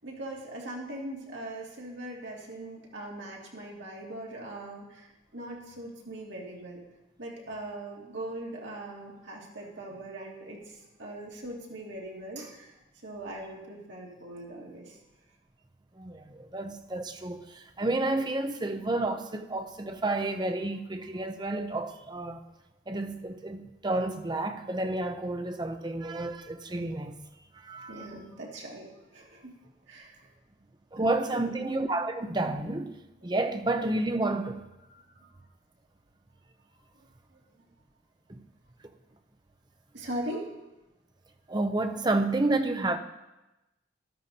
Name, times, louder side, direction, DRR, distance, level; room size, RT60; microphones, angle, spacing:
voice 1, 0.0-6.8 7.2-15.0 21.2-21.3 22.3-22.4 27.9-29.5 29.9-30.3 31.3-31.6 34.9-35.3 37.3-37.4 39.9-40.6, right 1 dB, 70° right, 2.4 m, -41 dB
voice 2, 16.0-22.4 22.9-27.2 27.5-28.1 30.9-34.7 38.3-38.4 41.5-43.0, right 2 dB, 20° right, 0.6 m, -30 dB
13.0 x 12.0 x 2.8 m
head